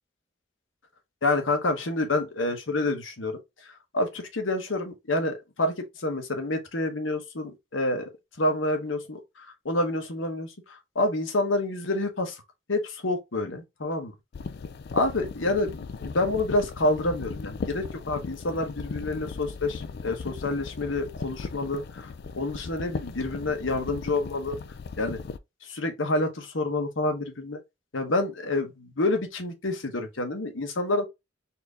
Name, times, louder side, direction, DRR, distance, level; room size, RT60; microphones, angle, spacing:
voice 1, 1.2-8.1 8.4-12.4 12.7-14.1 14.9-22.1 22.3-24.6 25.0-25.2 25.6-27.6 27.9-31.0, left 2 dB, 75° left, 1.1 m, -28 dB
sound 1, 14.3-25.4, left 4 dB, 55° left, 0.3 m, -37 dB
4.3 x 2.7 x 3.5 m
head